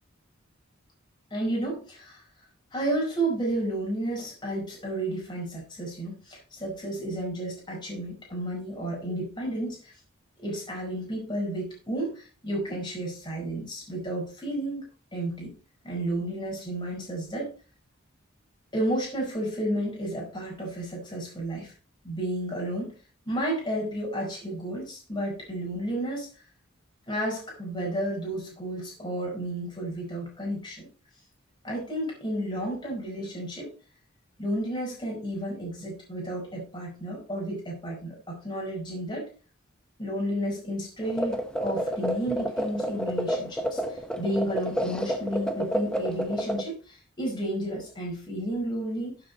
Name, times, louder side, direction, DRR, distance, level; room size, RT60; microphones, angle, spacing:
voice 1, 1.3-2.2 2.7-9.9 10.4-15.5 15.8-17.5 18.7-21.7 22.0-22.9 23.2-26.3 27.1-30.9 31.6-33.7 34.4-39.3 40.0-49.2, right 1 dB, 20° left, -2 dB, 5.0 m, -32 dB
sound 1, 41.0-46.6, equal, 5° left, 1.1 m, -29 dB
12.0 x 7.8 x 4.1 m, 0.36 s
head